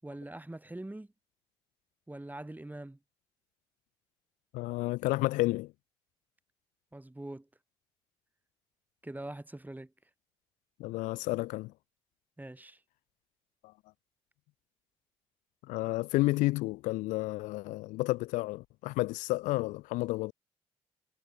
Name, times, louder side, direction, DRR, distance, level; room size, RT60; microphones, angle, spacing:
voice 1, 0.0-1.1 2.1-3.0 6.9-7.5 9.0-9.9 12.4-12.8, right 1 dB, 15° right, 6.7 m, -43 dB
voice 2, 4.5-5.7 10.8-11.7 15.7-20.3, left 20 dB, 80° left, 0.6 m, -31 dB
hypercardioid pair, 50°, 13 cm